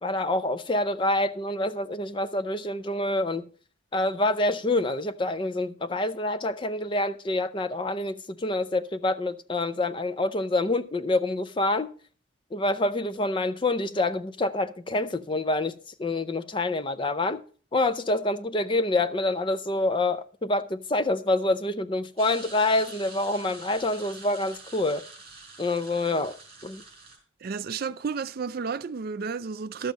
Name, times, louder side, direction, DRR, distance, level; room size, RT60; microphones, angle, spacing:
voice 1, 0.0-3.5 3.9-11.9 12.5-15.7 16.0-17.4 17.7-25.0 25.6-26.4 26.6-26.8, left 2 dB, 25° left, 0.5 m, -27 dB
sound 1, 22.2-27.2, right 3 dB, 30° right, 4.3 m, -46 dB
voice 2, 27.4-29.9, right 5 dB, 45° right, 0.4 m, -32 dB
12.0 x 7.2 x 5.1 m
head